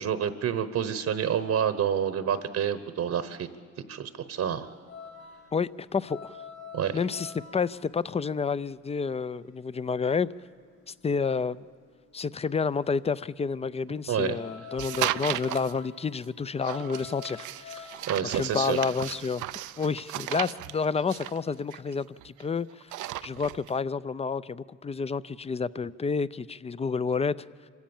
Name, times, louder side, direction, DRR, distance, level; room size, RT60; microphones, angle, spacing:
voice 1, 0.0-3.5 3.9-4.7 6.7-7.0 14.1-14.4 18.1-18.8, right 8 dB, 60° right, 1.1 m, -28 dB
sound 1, 4.6-11.8 12.0-20.4, left 6 dB, 60° left, 5.9 m, -47 dB
voice 2, 5.5-6.4 6.9-10.3 10.9-11.6 12.1-17.9 18.3-19.4 19.8-22.9 23.2-27.4, left 5 dB, 20° left, 0.5 m, -29 dB
sound 2, 14.8-15.7 16.6-22.4 22.7-23.7, right 15 dB, 85° right, 0.6 m, -35 dB
26.0 x 16.5 x 7.2 m
cardioid pair, 90°, 30 cm